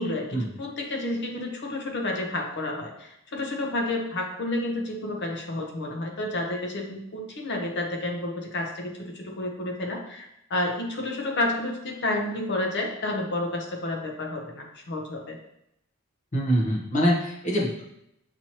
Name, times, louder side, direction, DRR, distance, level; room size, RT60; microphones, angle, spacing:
voice 1, 0.0-15.4, left 2 dB, 50° left, 1 dB, 0.8 m, -30 dB
voice 2, 16.3-17.9, equal, 35° left, -4 dB, 1.1 m, -24 dB
6.0 x 2.9 x 2.9 m, 0.80 s
head